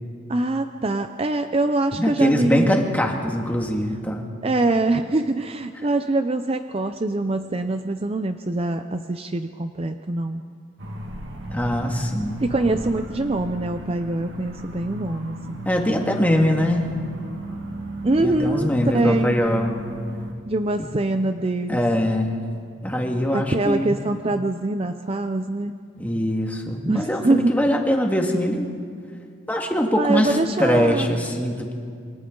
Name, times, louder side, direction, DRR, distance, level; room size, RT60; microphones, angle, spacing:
voice 1, 0.3-2.9 4.4-10.4 12.4-15.6 18.0-19.4 20.5-21.8 23.3-25.7 26.8-27.5 30.0-31.1, right 2 dB, 30° right, 8 dB, 0.5 m, -24 dB
voice 2, 2.0-4.2 11.5-12.4 15.7-17.0 18.2-19.8 20.8-20.9 21.7-22.4 22.8-24.0 26.0-28.7 29.5-31.7, equal, 10° left, 1 dB, 1.9 m, -22 dB
sound 1, 10.8-20.3, right 1 dB, 65° right, 2.0 m, -35 dB
27.5 x 24.0 x 3.9 m, 2.2 s
head